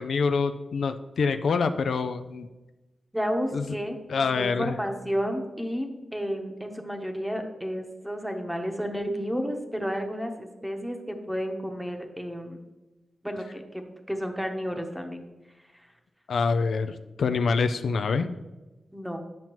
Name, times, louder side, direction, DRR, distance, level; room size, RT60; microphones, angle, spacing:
voice 1, 0.0-2.5 3.5-3.6 4.1-4.7 16.3-18.3, left 5 dB, 75° left, 9 dB, 0.3 m, -26 dB
voice 2, 3.1-4.0 4.4-12.6 13.2-13.8 14.1-15.2 15.7-15.9 18.9-19.2, equal, 5° right, 4 dB, 0.9 m, -31 dB
9.1 x 5.7 x 3.0 m, 1.1 s
wide cardioid pair, 95°, 0 cm